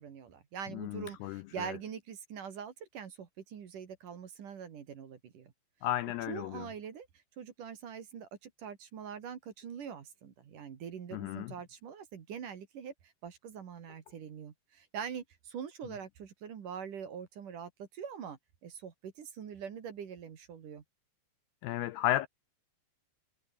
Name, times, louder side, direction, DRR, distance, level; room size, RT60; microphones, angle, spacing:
voice 1, 0.0-5.5 6.3-7.1 7.4-20.8, right 7 dB, 50° right, 3.3 m, -44 dB
voice 2, 0.8-1.4 5.8-6.6 11.1-11.5 21.6-22.3, left 14 dB, 85° left, 2.4 m, -33 dB
omnidirectional pair, 5.4 m